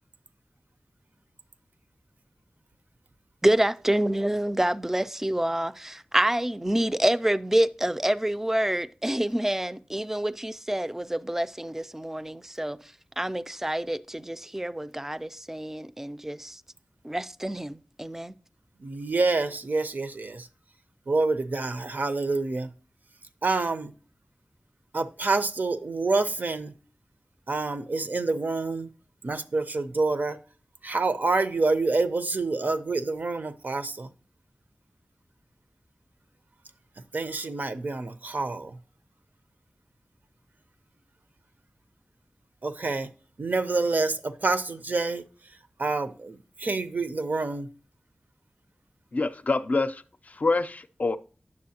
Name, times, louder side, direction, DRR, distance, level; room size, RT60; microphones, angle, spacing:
voice 1, 3.4-16.6 17.0-18.3, right 1 dB, 10° right, 0.3 m, -27 dB
voice 2, 18.8-20.4 21.1-22.7 23.4-23.9 24.9-26.7 27.5-28.9 29.2-30.4 30.8-34.1 37.1-38.7 42.6-43.1 43.4-45.2 45.8-47.7, right 3 dB, 70° right, 0.6 m, -27 dB
voice 3, 49.1-51.2, left 3 dB, 55° left, 0.4 m, -26 dB
9.5 x 6.9 x 2.8 m
wide cardioid pair, 65°, 3 cm